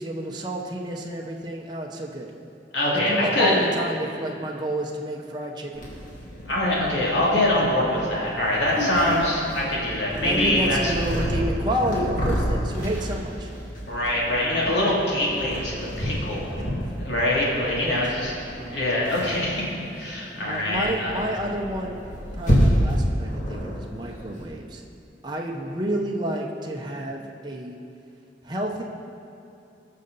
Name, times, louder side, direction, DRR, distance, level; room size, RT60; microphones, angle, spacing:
voice 1, 0.0-2.3 3.1-5.9 10.2-13.5 17.8-18.0 20.5-24.8 25.2-27.7 28.4-28.8, right 1 dB, 25° right, -1 dB, 0.8 m, -30 dB
voice 2, 2.7-3.6 6.5-10.9 13.9-16.4 17.0-18.3 18.7-19.6 19.9-21.2, left 1 dB, 70° left, -5 dB, 2.8 m, -24 dB
Purr, 5.7-24.4, equal, 45° left, 2.4 m, -29 dB
19.5 x 6.5 x 4.1 m, 2.7 s
head